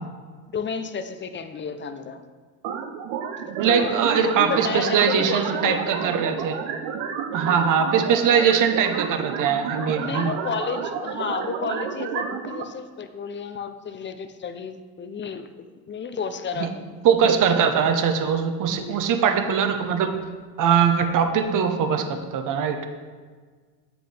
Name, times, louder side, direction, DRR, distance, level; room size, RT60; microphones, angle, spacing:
voice 1, 0.5-2.2 3.4-6.0 10.0-15.5 15.9-16.8 18.6-19.0, left 6 dB, 25° left, 10 dB, 0.6 m, -32 dB
sound 1, 2.6-12.6, right 7 dB, 70° right, 0.8 m, -31 dB
voice 2, 3.5-6.6 7.3-10.3 16.6-16.7 17.0-20.1 20.6-22.8, right 7 dB, 45° right, 7 dB, 1.0 m, -21 dB
7.9 x 7.6 x 3.4 m, 1.5 s
supercardioid pair, 90°, 42 cm